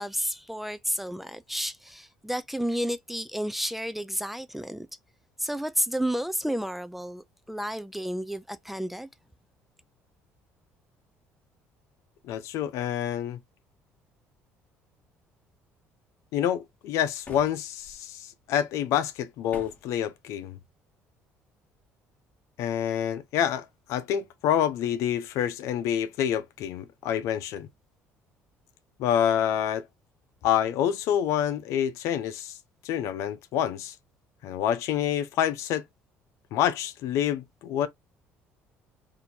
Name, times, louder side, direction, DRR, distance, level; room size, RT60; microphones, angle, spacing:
voice 1, 0.0-4.9 5.4-9.1, equal, 5° right, 0.3 m, -31 dB
voice 2, 12.2-13.4 16.3-20.6 22.6-27.7 29.0-29.9 30.4-32.6 32.8-33.9 34.4-35.8 36.5-37.9, left 10 dB, 75° left, 0.6 m, -27 dB
sound 1, 17.2-18.0 19.5-20.0, left 4 dB, 30° left, 1.1 m, -46 dB
2.7 x 2.6 x 4.3 m
cardioid pair, 105°, 5 cm